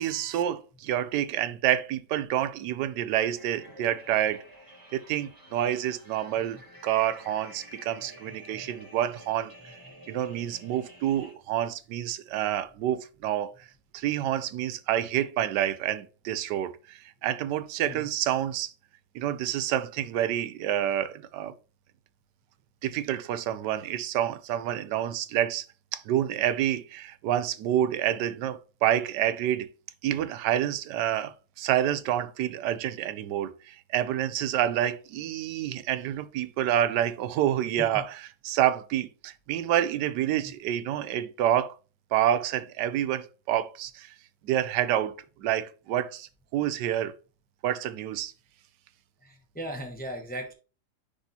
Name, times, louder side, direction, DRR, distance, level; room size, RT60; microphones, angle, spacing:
voice 1, 0.0-4.4 4.9-9.5 10.1-13.5 13.9-18.7 19.1-21.5 22.8-25.7 25.9-29.7 30.0-38.1 38.4-41.7 42.1-44.1 44.4-45.1 45.4-47.1 47.6-48.3, right 11 dB, 85° right, 1.2 m, -28 dB
sound 1, 3.3-11.3, equal, 15° right, 1.2 m, -50 dB
voice 2, 49.2-50.5, equal, 10° left, 0.5 m, -38 dB
9.8 x 3.4 x 2.8 m
omnidirectional pair, 1.8 m